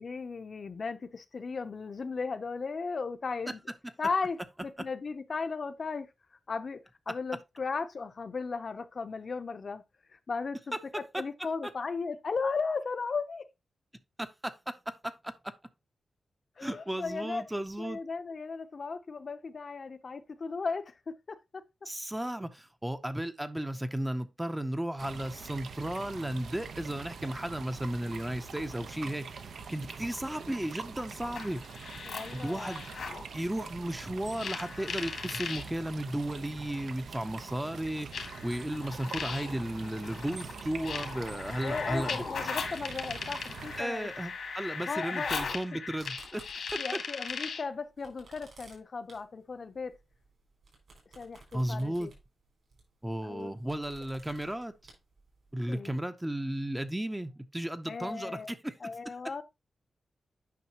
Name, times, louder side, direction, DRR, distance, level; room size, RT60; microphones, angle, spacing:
voice 1, 0.0-3.6 4.0-6.1 6.5-6.8 7.1-9.8 10.1-10.7 11.2-13.4 16.6-17.4 17.8-21.6 32.1-32.8 41.6-44.1 44.9-45.3 46.8-50.0 51.1-52.1 53.2-53.5 55.7-55.9 57.9-58.5 58.8-59.4, left 4 dB, 45° left, 0.6 m, -36 dB
voice 2, 14.2-15.5 16.6-18.0 21.9-31.6 32.3-32.9 33.3-42.3 43.8-46.5 46.7-46.8 51.5-52.1 53.0-54.7 55.5-58.9, right 1 dB, 10° right, 0.6 m, -35 dB
sound 1, 25.0-43.8, right 5 dB, 85° right, 0.7 m, -44 dB
sound 2, 31.2-33.2 34.3-35.6 36.7-36.8 38.1-47.7, left 5 dB, 80° left, 1.6 m, -38 dB
sound 3, 46.0-47.5 47.8-55.6, right 3 dB, 70° right, 5.1 m, -56 dB
9.3 x 5.7 x 2.9 m
wide cardioid pair, 140°, 0 cm